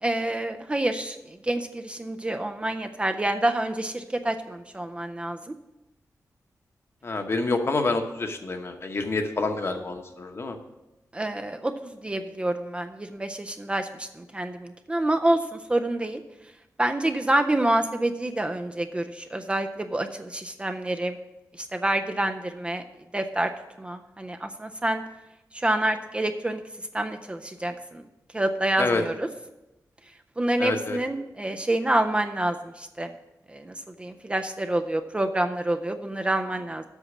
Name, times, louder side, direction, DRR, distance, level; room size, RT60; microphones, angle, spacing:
voice 1, 0.0-5.4 11.1-16.2 16.8-21.2 21.6-22.8 23.1-23.5 23.8-25.0 25.5-26.6 26.9-28.0 28.3-29.3 30.4-33.1 33.5-36.8, right 1 dB, 15° right, 6 dB, 0.4 m, -27 dB
voice 2, 7.0-10.6 28.8-29.0 30.6-31.0, left 3 dB, 40° left, 5 dB, 0.9 m, -27 dB
8.1 x 6.3 x 7.1 m, 0.98 s
wide cardioid pair, 155°, 6 cm